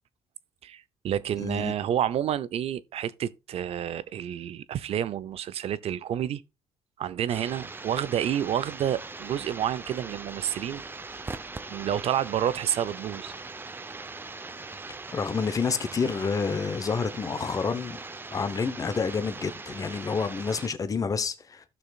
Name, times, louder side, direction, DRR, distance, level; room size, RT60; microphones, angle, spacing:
voice 1, 0.6-6.4 7.0-10.8 11.7-13.3, right 10 dB, 60° right, 0.6 m, -29 dB
voice 2, 1.4-1.7 15.1-18.0 18.3-21.6, left 5 dB, 30° left, 0.9 m, -29 dB
sound 1, 7.3-20.7, right 3 dB, 20° right, 0.7 m, -41 dB
15.0 x 6.1 x 2.4 m
cardioid pair, 105°, 12 cm